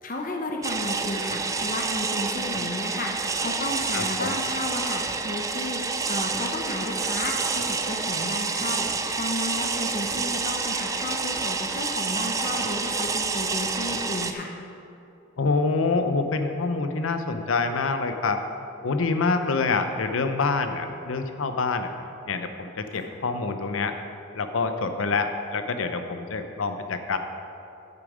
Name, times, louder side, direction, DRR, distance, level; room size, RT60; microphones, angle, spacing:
voice 1, 0.0-14.5 22.9-23.1, left 2 dB, 40° left, 1 dB, 0.9 m, -33 dB
sound 1, 0.6-14.3, right 4 dB, 15° right, 0.4 m, -28 dB
voice 2, 3.9-4.3 15.4-18.4 18.8-21.9 22.3-23.9 24.3-27.2, left 4 dB, 85° left, 7 dB, 0.7 m, -26 dB
10.5 x 8.6 x 5.0 m, 2.8 s
head